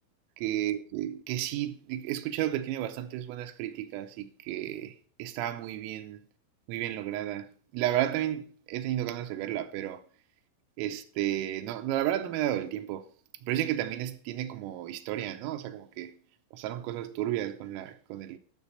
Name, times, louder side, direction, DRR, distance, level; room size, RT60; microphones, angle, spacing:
voice 1, 0.4-6.2 6.7-10.0 10.8-13.1 13.4-16.2 16.5-18.4, right 12 dB, 90° right, 3.5 m, -32 dB
11.5 x 7.2 x 5.5 m
omnidirectional pair, 6.0 m